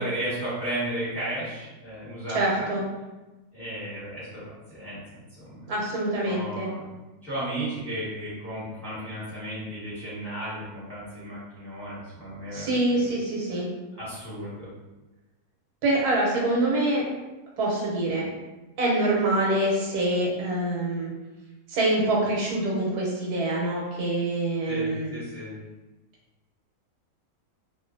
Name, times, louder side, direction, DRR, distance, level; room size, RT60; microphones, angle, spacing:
voice 1, 0.0-2.7 3.5-5.0 5.4-5.7 6.2-6.8 7.2-12.8 13.9-14.7 24.6-25.5, right 1 dB, ahead, -11 dB, 1.3 m, -34 dB
voice 2, 2.3-2.8 5.7-6.7 12.5-13.7 15.8-17.0 17.6-18.3 18.8-21.1 21.7-25.1, right 1 dB, 85° right, -4 dB, 1.2 m, -25 dB
2.6 x 2.4 x 2.5 m, 1.1 s
omnidirectional pair, 1.6 m